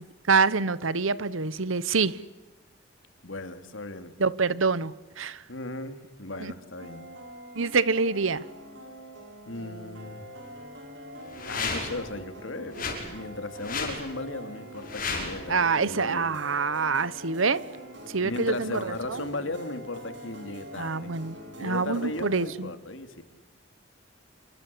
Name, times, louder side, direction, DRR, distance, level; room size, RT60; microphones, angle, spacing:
voice 1, 0.3-2.2 4.2-5.4 6.4-6.5 7.5-8.4 15.5-17.6 18.1-19.2 20.8-22.7, right 4 dB, 75° right, 1.0 m, -26 dB
voice 2, 3.2-4.1 5.5-7.0 9.5-10.2 11.5-16.3 18.2-21.1 21.6-23.2, left 2 dB, 70° left, 2.7 m, -36 dB
sound 1, 6.8-22.5, equal, 60° right, 7.5 m, -44 dB
sound 2, 11.3-12.0 12.7-13.0 13.6-14.0 14.8-15.4, left 4 dB, 40° left, 6.0 m, -32 dB
27.5 x 23.5 x 8.5 m
head